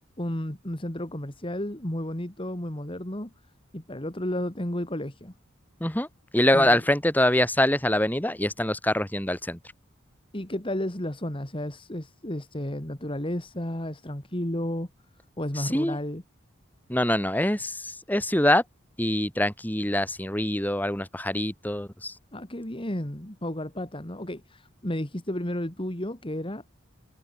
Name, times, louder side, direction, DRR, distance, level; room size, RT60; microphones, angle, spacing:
voice 1, 0.2-3.3 3.7-5.3 6.5-6.9 10.3-14.9 15.4-16.2 22.3-26.6, left 1 dB, 25° left, 2.3 m, -32 dB
voice 2, 6.3-9.6 15.7-16.0 16.9-17.8 18.1-18.6 19.0-22.1, left 1 dB, 10° left, 2.4 m, -24 dB
head